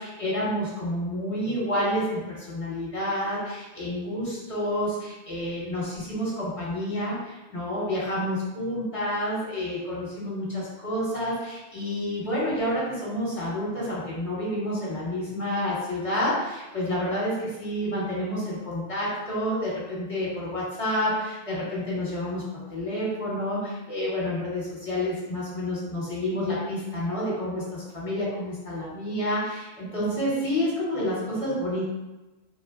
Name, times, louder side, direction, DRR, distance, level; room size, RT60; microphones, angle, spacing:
voice 1, 0.0-31.9, left 1 dB, 30° left, -9 dB, 1.2 m, -29 dB
3.8 x 2.1 x 2.3 m, 1.1 s
omnidirectional pair, 1.2 m